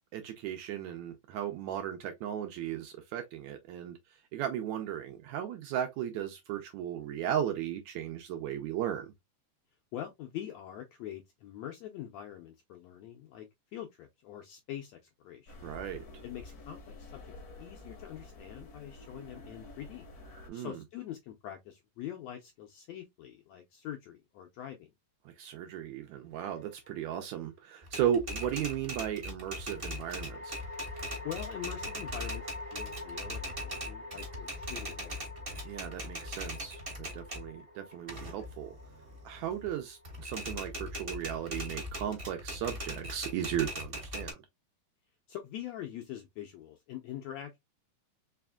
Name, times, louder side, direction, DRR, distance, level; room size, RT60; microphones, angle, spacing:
voice 1, 0.1-9.1 15.6-16.2 20.5-20.8 25.2-30.6 35.6-38.7 39.2-44.4, right 10 dB, 80° right, 1.7 m, -36 dB
voice 2, 9.9-13.5 13.7-15.6 16.2-17.2 17.6-20.1 20.5-24.9 31.2-35.2 45.3-47.6, left 11 dB, 80° left, 1.5 m, -44 dB
sound 1, 15.5-20.5, left 2 dB, 65° left, 0.9 m, -49 dB
sound 2, 26.4-27.1 29.5-40.8, left 2 dB, 55° right, 0.3 m, -46 dB
Typewriter, 27.8-37.5 37.9-39.7 40.0-44.3, equal, 35° right, 0.8 m, -40 dB
4.8 x 3.4 x 2.2 m
omnidirectional pair, 3.7 m